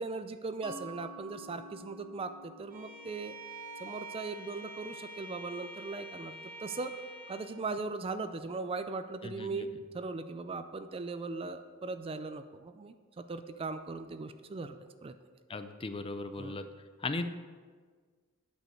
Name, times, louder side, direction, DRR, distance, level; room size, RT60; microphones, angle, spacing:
voice 1, 0.0-3.4 3.8-7.0 7.3-14.8 15.0-15.1 16.3-16.6, right 3 dB, 25° right, 10 dB, 0.4 m, -39 dB
Mallet percussion, 0.6-6.0, right 1 dB, 5° right, 1.2 m, -52 dB
Bowed string instrument, 2.7-7.6, right 1 dB, 45° right, 1.7 m, -46 dB
voice 2, 9.2-9.6 15.5-16.6 17.0-17.3, left 3 dB, 25° left, 9 dB, 0.5 m, -37 dB
9.0 x 5.5 x 6.4 m, 1.5 s
head